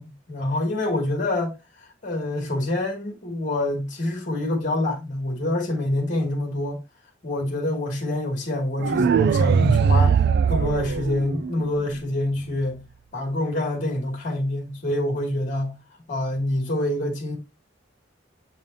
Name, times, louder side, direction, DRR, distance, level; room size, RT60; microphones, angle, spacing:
voice 1, 0.0-6.8 7.2-10.2 10.5-12.9 13.1-15.8 16.1-17.4, left 1 dB, 45° left, 2.3 m, -26 dB
sound 1, 8.8-11.8, right 6 dB, 55° right, 0.3 m, -20 dB
7.2 x 6.9 x 2.7 m
head